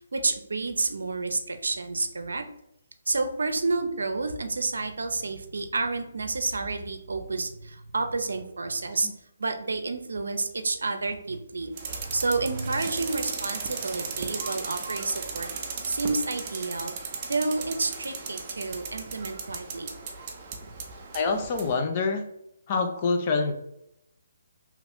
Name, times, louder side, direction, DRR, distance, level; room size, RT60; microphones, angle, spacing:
voice 1, 0.1-2.4 3.1-9.1 9.4-15.5 15.9-16.9 17.2-19.9, right 3 dB, 80° right, 7 dB, 0.5 m, -30 dB
sound 1, 11.8-21.8, right 5 dB, 30° right, 0.5 m, -36 dB
voice 2, 21.1-22.3 22.7-23.5, left 4 dB, 35° left, 5 dB, 0.4 m, -26 dB
2.9 x 2.4 x 3.4 m, 0.82 s
hypercardioid pair, 150°, 0 cm